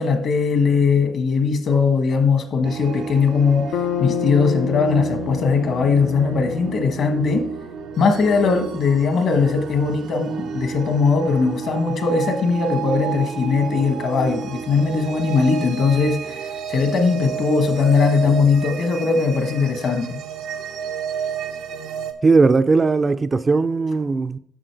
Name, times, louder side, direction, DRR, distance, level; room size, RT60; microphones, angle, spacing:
voice 1, 0.0-7.5 8.0-16.4 16.7-20.2, left 5 dB, 65° left, 1.3 m, -19 dB
sound 1, 2.6-22.1, right 6 dB, 85° right, 0.7 m, -31 dB
Bass guitar, 3.7-7.8, left 8 dB, 85° left, 0.4 m, -29 dB
voice 2, 22.2-24.4, right 4 dB, 30° right, 0.4 m, -18 dB
7.9 x 6.2 x 4.6 m
cardioid pair, 90°, 0 cm